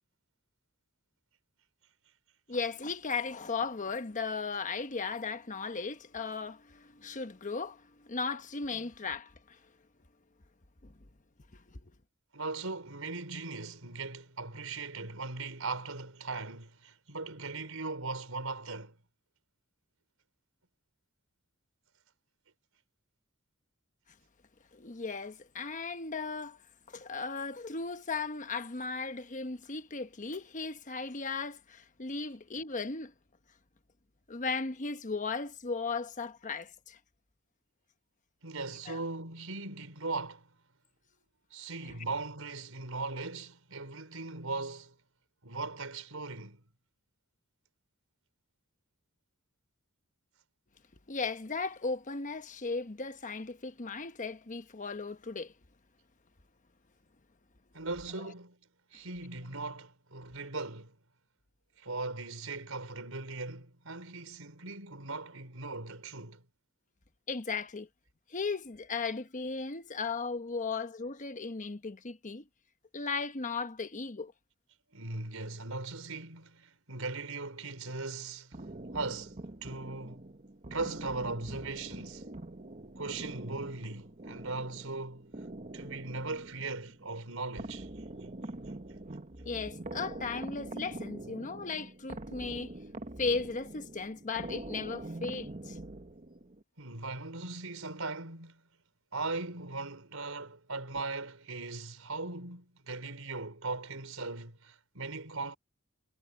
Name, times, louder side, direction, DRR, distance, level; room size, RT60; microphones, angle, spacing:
voice 1, 2.5-9.6 10.8-10.9 11.7-11.9 24.7-26.6 26.9-33.1 34.3-37.0 38.9-39.0 51.1-55.5 67.3-67.9 68.3-72.4 72.9-74.3 89.4-92.7 93.2-95.8, left 4 dB, 40° left, 1.1 m, -36 dB
voice 2, 12.3-19.0 38.4-40.5 41.5-44.9 45.4-46.6 57.7-58.6 58.9-60.9 61.8-66.4 74.9-78.6 78.9-80.3 80.7-82.3 83.0-85.4 85.7-87.9 96.8-98.6 99.1-105.6, right 3 dB, 85° right, 4.7 m, -39 dB
sound 1, 78.5-96.6, right 2 dB, 35° right, 1.4 m, -44 dB
head